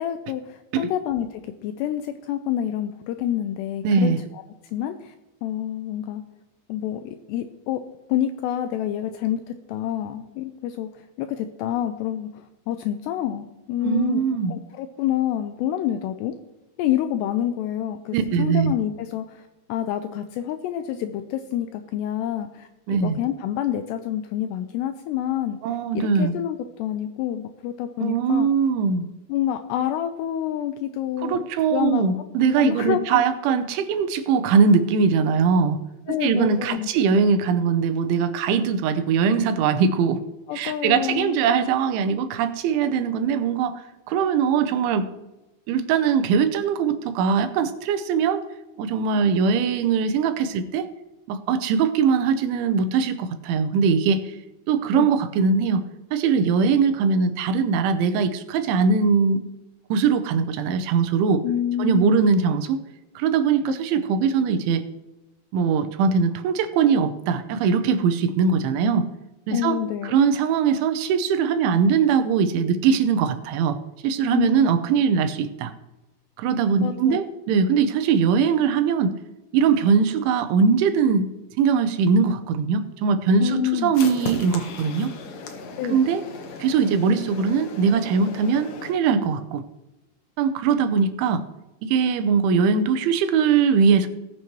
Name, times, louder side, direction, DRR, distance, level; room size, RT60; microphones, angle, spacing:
voice 1, 0.0-4.4 4.7-5.1 5.4-6.2 6.7-7.8 8.1-14.2 14.5-16.3 16.8-25.6 25.9-28.5 29.3-31.4 31.7-32.1 32.6-33.2 33.5-33.6 36.1-37.2 40.5-41.3 54.9-55.1 61.4-62.2 63.9-64.0 69.5-70.2 74.3-74.5 76.8-77.2 83.4-83.9 85.8-86.0, left 10 dB, 85° left, 8 dB, 2.4 m, -27 dB
voice 2, 3.8-4.2 13.8-14.5 18.1-18.7 22.9-23.2 25.6-26.3 28.0-29.1 31.2-35.8 36.2-40.2 40.5-45.1 45.7-48.5 48.8-50.9 51.3-54.4 54.7-55.9 56.1-59.5 59.9-61.4 61.8-62.8 63.2-64.9 65.5-69.1 69.5-73.8 74.0-75.7 76.4-79.2 79.5-81.3 81.6-85.1 85.9-86.2 86.6-89.6 90.4-91.4 91.8-94.1, right 6 dB, 85° right, 9 dB, 3.2 m, -21 dB
sound 1, 83.9-88.9, left 4 dB, 65° left, 2.4 m, -37 dB
19.5 x 6.9 x 3.1 m, 1.0 s
omnidirectional pair, 5.4 m